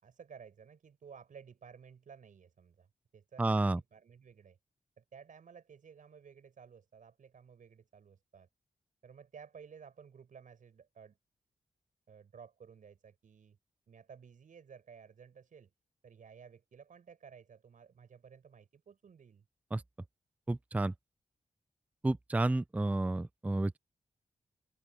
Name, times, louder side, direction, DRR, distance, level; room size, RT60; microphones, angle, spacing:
voice 1, 0.0-2.9 3.1-4.6 5.0-8.5 9.0-11.2 12.1-13.6 13.9-15.7 16.0-19.4, right 6 dB, 80° right, 7.0 m, -55 dB
voice 2, 3.4-3.8 19.7-19.8 20.5-20.9 22.0-23.8, right 2 dB, 10° right, 0.4 m, -30 dB
wide cardioid pair, 120°, 13 cm